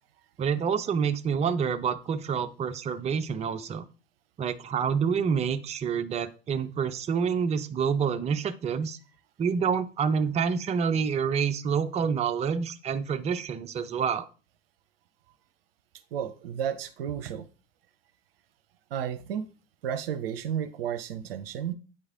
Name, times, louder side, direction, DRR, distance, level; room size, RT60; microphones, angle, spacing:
voice 1, 0.4-3.8 4.4-9.0 9.4-14.2, right 6 dB, 20° right, 0.5 m, -27 dB
voice 2, 16.1-17.5 18.9-19.5 19.8-21.7, right 9 dB, 65° right, 0.6 m, -32 dB
8.8 x 3.2 x 3.7 m
figure-of-eight pair, 70°, 31 cm